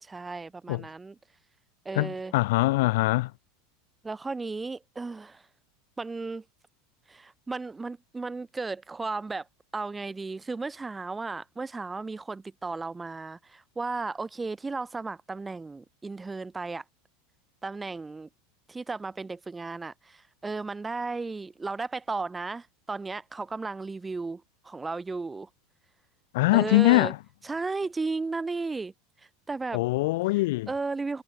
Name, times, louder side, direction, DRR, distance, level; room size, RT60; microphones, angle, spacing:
voice 1, 0.0-1.2 1.9-2.3 4.0-5.4 6.0-6.4 7.1-9.5 9.7-16.8 17.6-18.3 18.7-25.5 26.5-27.1 27.4-28.9 29.5-29.8 30.7-31.2, right 3 dB, 15° right, 1.8 m, -34 dB
voice 2, 2.0-3.3 26.3-27.2 29.7-30.7, left 20 dB, 70° left, 0.3 m, -23 dB
hypercardioid pair, 95°, 0 cm